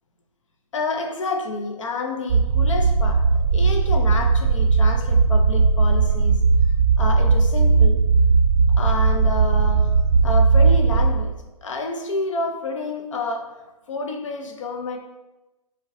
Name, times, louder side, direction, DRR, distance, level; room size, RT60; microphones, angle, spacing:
voice 1, 0.7-6.4 7.0-8.1 8.7-9.9 10.2-11.4 11.6-13.6 13.9-15.0, left 3 dB, 50° left, 4 dB, 0.4 m, -29 dB
sound 1, 2.3-11.1, right 4 dB, 45° right, 0.4 m, -17 dB
5.2 x 2.1 x 2.5 m, 1.1 s
figure-of-eight pair, 135°, 20 cm